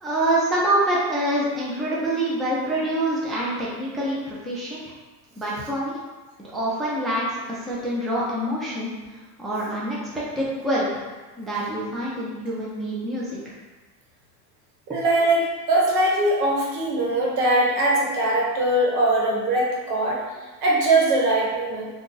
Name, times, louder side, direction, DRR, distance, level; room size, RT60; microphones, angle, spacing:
voice 1, 0.0-4.8 5.4-5.9 6.4-8.9 9.4-11.1 11.4-13.3, right 1 dB, ahead, -7 dB, 0.4 m, -26 dB
voice 2, 14.9-21.9, right 1 dB, 80° right, -4 dB, 1.2 m, -21 dB
2.5 x 2.4 x 3.8 m, 1.3 s
supercardioid pair, 120°, 46 cm